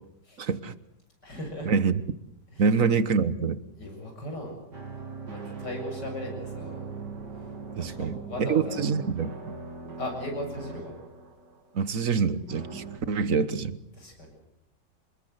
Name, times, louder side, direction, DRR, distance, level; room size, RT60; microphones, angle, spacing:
voice 1, 0.4-0.7 1.7-1.9 2.6-3.6 7.8-9.3 11.7-13.8, right 5 dB, 55° right, 14 dB, 1.5 m, -26 dB
voice 2, 1.2-1.7 2.5-2.7 3.8-4.6 4.9-6.9 7.8-8.8 10.0-11.0 13.9-14.3, left 1 dB, 75° left, 2 dB, 7.9 m, -37 dB
sound 1, 4.7-11.8 12.5-13.0, right 4 dB, 80° right, 3.3 m, -40 dB
27.0 x 20.5 x 8.0 m, 0.81 s
omnidirectional pair, 1.8 m